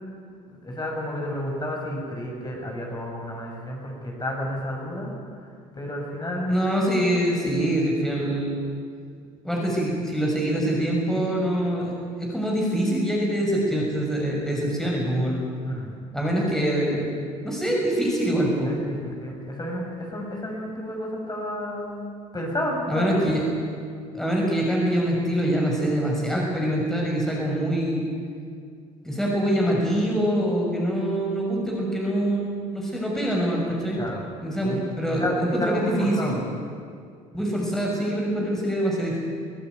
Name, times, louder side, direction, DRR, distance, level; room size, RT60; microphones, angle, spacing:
voice 1, 0.6-5.1 5.7-6.6 15.6-15.9 18.6-22.0 22.3-23.3 34.0-34.2 34.6-34.8 35.1-36.4 37.4-37.5, left 1 dB, 25° left, -1 dB, 7.2 m, -31 dB
voice 2, 6.5-8.6 9.4-15.4 16.1-17.2 17.4-18.7 22.9-23.4 24.1-28.0 29.0-34.0 34.4-36.4 37.3-39.2, right 1 dB, 5° left, -3 dB, 6.5 m, -24 dB
25.0 x 15.5 x 9.5 m, 2.2 s
hypercardioid pair, 60°, 18 cm